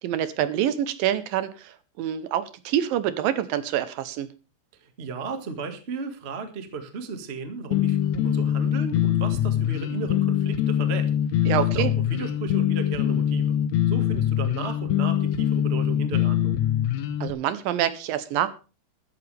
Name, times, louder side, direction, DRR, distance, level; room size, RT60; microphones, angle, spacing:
voice 1, 0.0-4.3 11.5-11.9 17.2-18.5, right 11 dB, 75° right, 14 dB, 2.4 m, -26 dB
voice 2, 4.8-13.5 13.9-16.6, right 4 dB, 50° right, 7 dB, 0.7 m, -35 dB
sound 1, 7.7-17.3, left 11 dB, 75° left, 1.6 m, -23 dB
14.5 x 13.0 x 3.4 m, 0.33 s
omnidirectional pair, 4.4 m